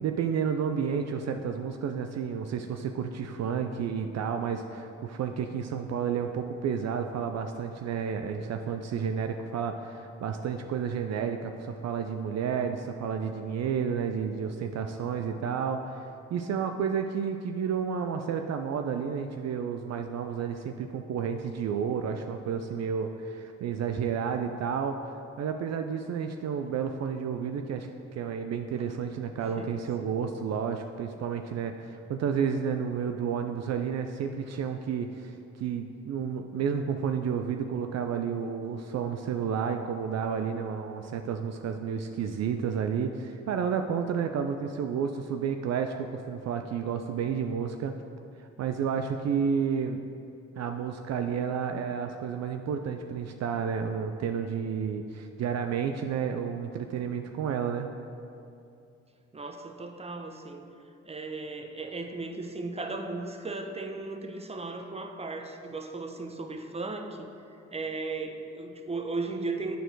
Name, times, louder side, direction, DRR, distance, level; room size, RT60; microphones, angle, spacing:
voice 1, 0.0-24.9 25.4-47.9 48.4-50.0 50.6-57.9, right 7 dB, 60° right, 6 dB, 0.5 m, -31 dB
voice 2, 59.3-60.6 61.0-67.3 67.7-69.8, right 3 dB, 20° right, 5 dB, 0.8 m, -36 dB
9.1 x 4.4 x 4.6 m, 2.6 s
supercardioid pair, 55°, 30 cm